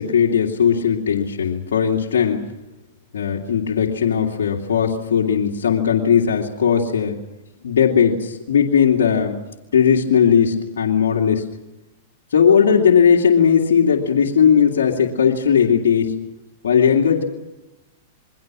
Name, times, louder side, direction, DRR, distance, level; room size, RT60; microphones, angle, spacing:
voice 1, 0.0-2.4 3.1-7.2 7.6-9.4 9.7-11.4 12.3-16.1 16.6-17.2, left 7 dB, 85° left, -2 dB, 2.5 m, -17 dB
28.0 x 22.5 x 6.2 m, 1.0 s
hypercardioid pair, 130°, 0 cm